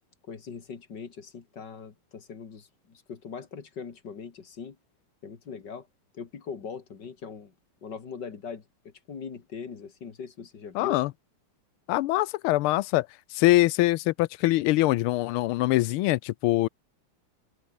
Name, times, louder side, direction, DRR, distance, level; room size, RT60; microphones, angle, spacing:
voice 1, 0.3-4.8 5.2-5.9 6.1-7.5 7.8-11.0, left 6 dB, 55° left, 2.9 m, -41 dB
voice 2, 10.7-11.1 11.9-13.1 13.3-16.7, left 17 dB, 85° left, 1.5 m, -23 dB
omnidirectional pair, 2.3 m